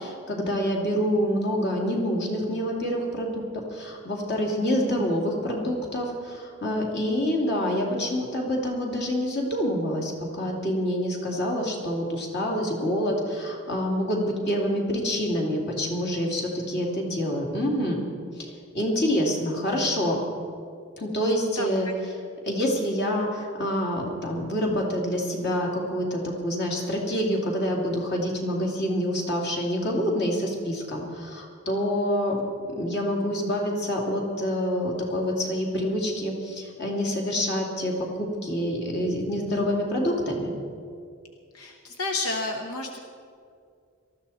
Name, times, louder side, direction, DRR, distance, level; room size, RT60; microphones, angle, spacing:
voice 1, 0.0-18.0 18.4-20.2 21.0-22.1 22.4-32.4 32.6-37.9 38.2-40.5, equal, 50° left, -1 dB, 2.7 m, -27 dB
voice 2, 41.5-43.0, left 2 dB, 85° left, 3 dB, 1.1 m, -30 dB
19.0 x 13.5 x 4.2 m, 2.3 s
head